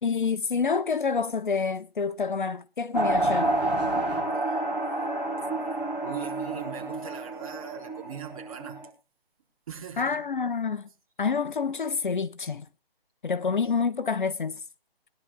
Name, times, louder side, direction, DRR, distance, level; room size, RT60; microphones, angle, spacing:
voice 1, 0.0-3.5 10.0-10.9 11.2-12.6 13.2-14.5, left 5 dB, 50° left, 1.0 m, -27 dB
sound 1, 2.9-8.9, right 2 dB, ahead, 0.7 m, -29 dB
voice 2, 6.0-8.8 9.7-10.2, right 9 dB, 35° right, 4.0 m, -40 dB
21.5 x 11.0 x 2.2 m
figure-of-eight pair, 160°, 31 cm